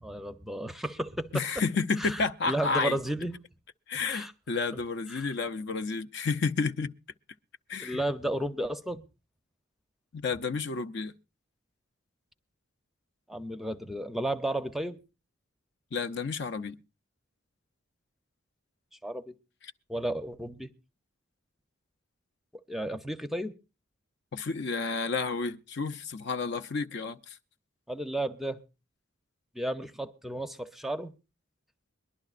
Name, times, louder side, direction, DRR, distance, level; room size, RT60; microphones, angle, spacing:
voice 1, 0.0-1.3 2.0-3.4 4.1-4.3 5.1-5.3 7.8-9.0 13.3-15.0 19.0-19.3 19.9-20.7 22.7-23.5 27.9-28.6 29.5-31.1, right 1 dB, ahead, 0.6 m, -33 dB
voice 2, 1.3-3.0 3.9-6.9 7.7-8.0 10.1-11.1 15.9-16.8 24.3-27.4, left 4 dB, 55° left, 0.5 m, -31 dB
23.5 x 11.5 x 2.4 m
head